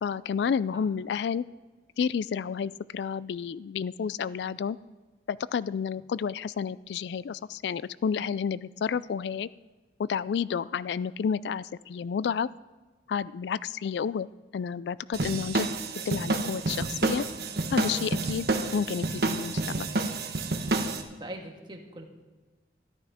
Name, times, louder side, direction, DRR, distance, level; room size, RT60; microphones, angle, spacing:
voice 1, 0.0-1.4 2.0-4.8 5.3-9.5 10.0-12.5 13.1-14.3 14.5-15.7 16.1-17.2 17.7-18.5 18.7-19.9, left 6 dB, 75° left, 19 dB, 0.3 m, -30 dB
sound 1, 15.1-21.0, right 2 dB, 65° right, 1.2 m, -29 dB
voice 2, 17.9-18.7 20.8-22.1, right 1 dB, 25° right, 1 dB, 1.7 m, -44 dB
13.5 x 12.0 x 5.0 m, 1.3 s
head